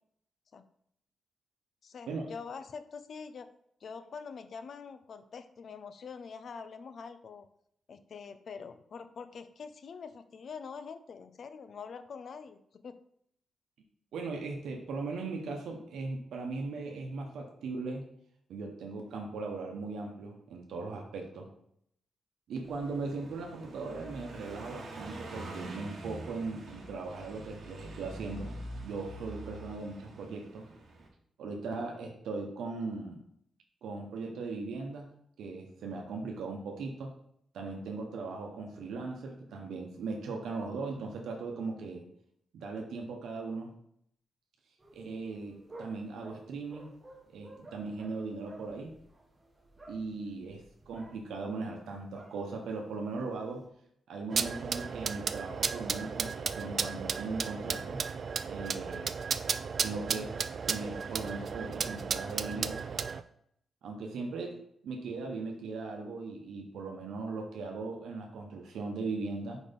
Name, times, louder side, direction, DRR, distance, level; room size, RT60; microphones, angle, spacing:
voice 1, 1.8-3.5 3.8-7.5 7.9-13.0, left 5 dB, 55° left, 11 dB, 0.5 m, -45 dB
voice 2, 14.1-18.0 18.5-21.5 22.5-28.5 28.8-30.7 31.4-33.2 33.8-35.1 35.4-37.1 37.5-42.0 42.5-43.7 44.9-47.0 47.3-49.0 49.9-53.6 54.1-58.0 58.5-59.1 59.8-60.3 60.7-62.8 63.8-64.6 64.8-69.6, right 3 dB, 90° right, 1 dB, 1.0 m, -38 dB
Car passing by, 22.6-31.1, right 2 dB, 65° right, 1.4 m, -45 dB
sound 1, 44.8-53.7, right 1 dB, 15° right, 1.2 m, -54 dB
sound 2, 54.3-63.2, right 5 dB, 45° right, 0.3 m, -34 dB
4.9 x 4.2 x 5.2 m, 0.69 s
cardioid pair, 125°, 0 cm